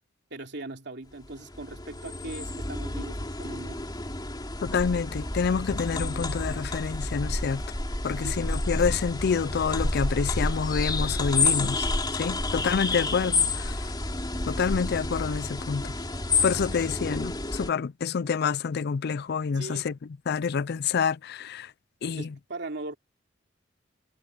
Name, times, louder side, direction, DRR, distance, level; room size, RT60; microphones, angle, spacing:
voice 1, 0.3-3.8 8.2-8.4 19.5-19.9 22.2-23.0, right 2 dB, 65° right, 2.9 m, -39 dB
sound 1, 1.3-17.7, left 3 dB, 20° left, 3.2 m, -30 dB
voice 2, 4.6-7.6 8.0-11.9 12.1-13.7 14.5-15.9 16.4-19.9 20.3-21.7 22.0-22.3, left 6 dB, 55° left, 0.4 m, -27 dB
head